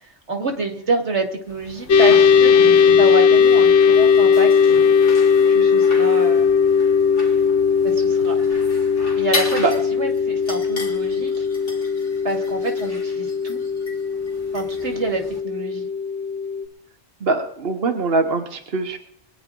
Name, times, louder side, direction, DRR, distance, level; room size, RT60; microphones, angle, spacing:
voice 1, 0.0-2.5 3.0-4.5 5.5-6.5 7.8-8.6 9.2-9.7 9.9-11.4 12.2-13.6 14.5-15.9, right 3 dB, 80° right, 3 dB, 2.6 m, -27 dB
sound 1, 1.5-15.4, left 2 dB, 45° left, 2.5 m, -35 dB
sound 2, 1.9-16.6, left 6 dB, 85° left, 1.1 m, -17 dB
voice 2, 17.2-19.0, right 3 dB, 60° right, 5 dB, 1.3 m, -22 dB
22.5 x 10.5 x 3.9 m, 0.72 s
omnidirectional pair, 1.1 m